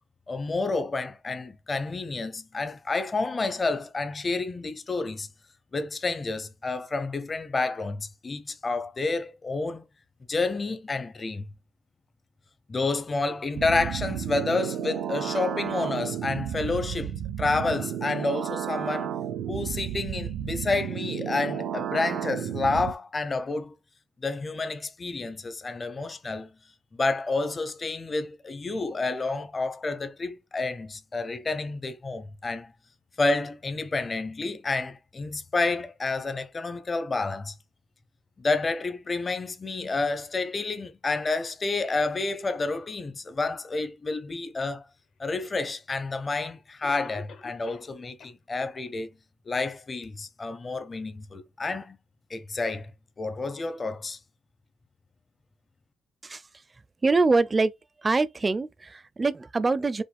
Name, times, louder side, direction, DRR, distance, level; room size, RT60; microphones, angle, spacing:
voice 1, 0.3-5.3 5.7-9.8 10.3-11.4 12.7-19.2 19.5-23.7 24.2-26.5 26.9-32.7 33.2-37.5 38.4-44.8 45.2-49.1 49.5-52.0 52.3-52.9 53.2-54.2, left 3 dB, 30° left, 0.7 m, -29 dB
sound 1, 13.6-22.9, right 10 dB, 85° right, 0.5 m, -32 dB
Cough, 45.7-45.8 46.8-47.9 48.2-48.3 48.9-49.0 49.5-49.6, left 4 dB, 70° left, 1.3 m, -46 dB
voice 2, 57.0-57.7 58.0-60.0, right 3 dB, 25° right, 0.5 m, -24 dB
5.1 x 2.2 x 3.5 m
cardioid pair, 90°, 0 cm